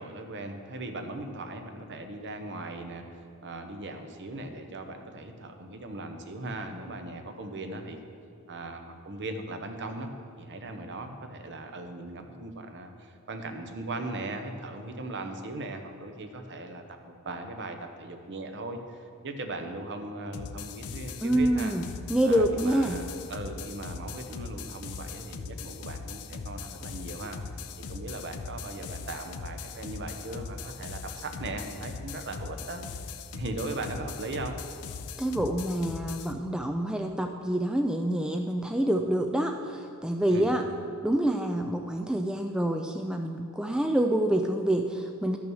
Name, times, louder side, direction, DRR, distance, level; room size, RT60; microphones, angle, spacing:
voice 1, 0.0-3.0 3.4-8.0 8.5-10.1 10.4-21.7 22.2-27.4 27.8-32.8 33.3-34.6 40.3-40.5, right 2 dB, 55° right, 5 dB, 0.9 m, -38 dB
sound 1, 20.3-36.3, left 4 dB, 75° left, 0.5 m, -40 dB
voice 2, 21.2-23.0 35.2-40.6 41.0-45.4, right 1 dB, 5° right, 4 dB, 0.3 m, -27 dB
12.0 x 6.0 x 6.3 m, 2.7 s
head